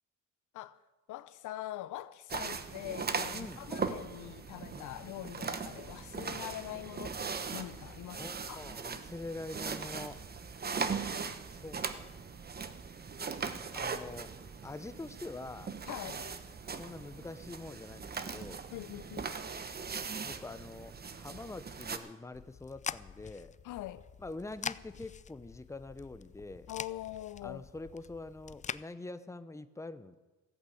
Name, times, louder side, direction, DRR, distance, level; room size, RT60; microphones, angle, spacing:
voice 1, 1.1-8.2 8.5-8.6 15.9-16.3 18.7-19.3 23.6-24.1 26.7-27.6, left 14 dB, 80° left, 0.6 m, -43 dB
sound 1, 2.3-22.0, right 5 dB, 30° right, 1.0 m, -39 dB
voice 2, 3.3-3.7 4.7-5.0 6.2-6.5 8.2-10.2 11.5-12.2 13.7-14.3 14.6-15.7 16.7-18.6 20.2-23.5 24.2-26.7 27.4-30.2, left 2 dB, 10° left, 0.8 m, -45 dB
sound 2, 22.3-28.8, left 7 dB, 25° left, 0.4 m, -44 dB
15.0 x 8.1 x 8.6 m
cardioid pair, 90°, 30 cm